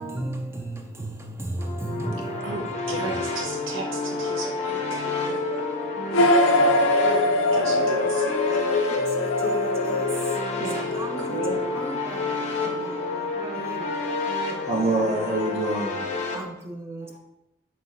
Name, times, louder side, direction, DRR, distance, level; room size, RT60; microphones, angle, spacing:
voice 1, 0.0-2.6 8.9-10.0 10.7-13.9 16.3-17.2, right 1 dB, 15° right, 3 dB, 0.3 m, -36 dB
sound 1, 1.6-16.4, left 3 dB, 35° left, 0.6 m, -29 dB
voice 2, 2.4-5.4 6.2-8.6 10.6-11.7, right 3 dB, 80° right, 1 dB, 0.8 m, -36 dB
sound 2, 6.1-10.9, left 2 dB, 85° left, 0.4 m, -22 dB
voice 3, 14.6-16.6 17.0-17.2, right 2 dB, 35° right, -2 dB, 0.8 m, -27 dB
5.7 x 2.9 x 2.5 m, 0.88 s
head